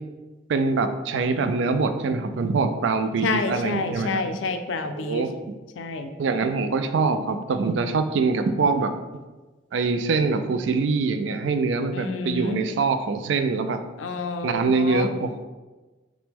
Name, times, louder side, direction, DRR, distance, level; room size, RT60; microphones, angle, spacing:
voice 1, 0.5-4.2 4.8-5.3 6.2-8.9 9.7-13.8 14.4-15.4, right 4 dB, 70° right, 8 dB, 0.4 m, -24 dB
voice 2, 3.2-5.3 5.8-6.1 11.9-12.6 14.0-15.1, left 3 dB, 80° left, 7 dB, 0.4 m, -28 dB
5.8 x 2.1 x 3.5 m, 1.2 s
head